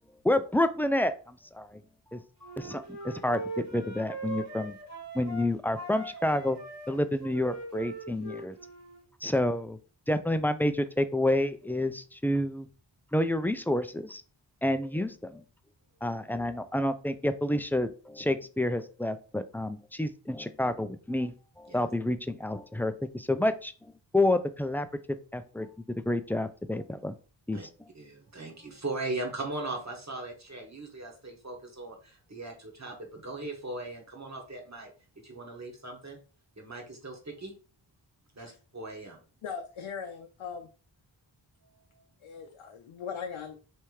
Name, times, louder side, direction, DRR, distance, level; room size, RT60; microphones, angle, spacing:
voice 1, 0.2-1.8 2.1-4.8 5.1-6.6 6.9-8.5 9.2-9.8 10.1-12.7 13.1-14.2 14.6-15.4 16.0-24.9 25.3-25.7 26.1-27.1 27.5-27.6, left 1 dB, 5° left, 10 dB, 0.3 m, -29 dB
Wind instrument woodwind instrument, 2.4-5.5 5.7-9.0, right 2 dB, 55° right, 2.0 m, -41 dB
voice 2, 27.9-34.9 35.2-36.2 36.6-37.5 38.4-39.2, right 2 dB, 35° right, 1 dB, 1.5 m, -39 dB
voice 3, 39.4-40.7 42.2-43.6, left 6 dB, 85° left, 4 dB, 0.6 m, -39 dB
3.4 x 3.0 x 4.6 m, 0.37 s
cardioid pair, 45°, 47 cm